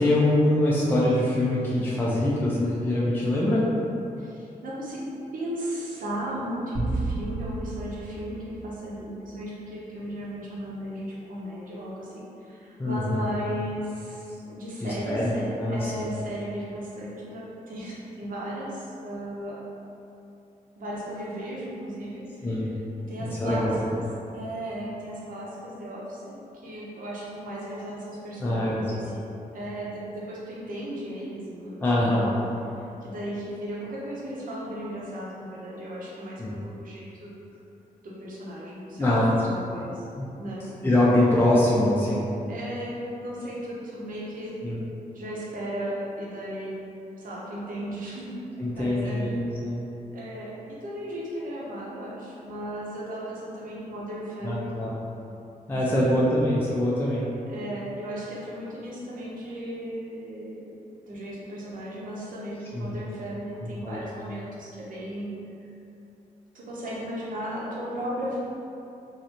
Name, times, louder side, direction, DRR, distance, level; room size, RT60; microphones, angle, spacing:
voice 1, 0.0-3.7 12.8-13.2 14.8-15.3 15.6-16.1 22.4-22.7 23.2-23.9 28.4-28.9 31.8-32.3 36.4-36.5 38.9-39.3 40.1-40.3 40.8-42.3 44.6-44.8 48.6-49.8 54.4-54.9 55.7-57.3 62.7-62.9 63.8-64.0, left 1 dB, 15° left, -6 dB, 0.4 m, -24 dB
voice 2, 4.2-19.7 20.8-22.3 23.0-24.1 24.3-29.3 29.5-32.4 32.7-37.3 38.0-39.1 39.4-40.0 40.4-40.7 42.5-44.6 45.1-46.8 47.2-48.4 48.7-49.3 50.1-54.7 55.7-56.2 57.5-60.7 61.1-65.3 66.5-68.4, equal, 70° right, -5 dB, 0.8 m, -36 dB
sound 1, 6.7-9.2, right 2 dB, 30° right, 0.9 m, -32 dB
3.1 x 2.6 x 2.8 m, 2.8 s
wide cardioid pair, 110°, 15 cm